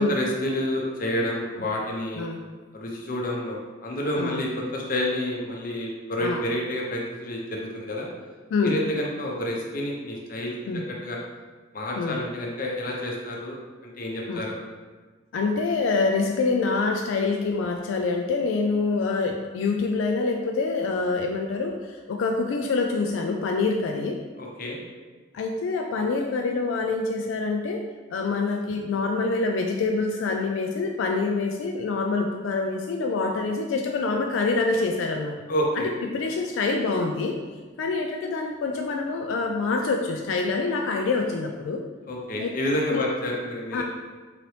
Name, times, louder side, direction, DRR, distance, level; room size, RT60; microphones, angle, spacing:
voice 1, 0.0-2.3 2.7-8.1 8.6-11.2 11.7-13.6 13.8-14.5 24.4-24.8 35.5-35.9 42.1-43.8, left 1 dB, 45° left, -2 dB, 0.7 m, -29 dB
voice 2, 15.3-24.2 25.3-27.8 28.1-35.4 35.8-37.3 37.8-41.8 42.4-42.5 42.9-43.0 43.7-43.8, left 3 dB, 85° left, 2 dB, 0.3 m, -26 dB
3.9 x 3.0 x 3.2 m, 1.3 s
head